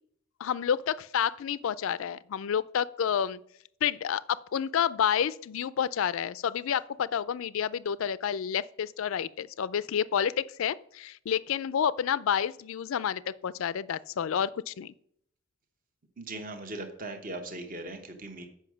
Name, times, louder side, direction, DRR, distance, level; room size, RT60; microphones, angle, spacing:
voice 1, 0.4-3.4 3.8-14.9, left 8 dB, 70° left, 0.3 m, -29 dB
voice 2, 16.2-18.4, right 2 dB, 40° right, 1.0 m, -39 dB
7.8 x 5.6 x 6.1 m
head